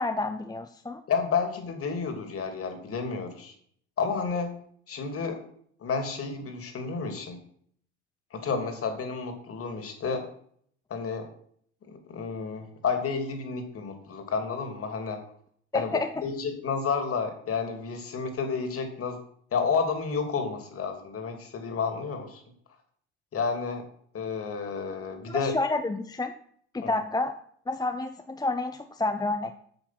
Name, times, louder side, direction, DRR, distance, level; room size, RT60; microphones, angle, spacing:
voice 1, 0.0-1.0 15.7-16.1 25.3-26.3 26.7-27.3 27.7-29.7, left 2 dB, 10° left, 8 dB, 0.8 m, -29 dB
voice 2, 1.1-3.5 4.0-4.5 4.9-5.4 5.8-7.4 8.3-10.2 10.9-11.3 11.8-15.2 15.7-19.2 19.5-22.4 23.3-23.8 24.1-25.6 26.8-26.9, left 5 dB, 40° left, 6 dB, 2.9 m, -31 dB
9.4 x 8.0 x 5.9 m, 0.63 s
hypercardioid pair, 65°, 35 cm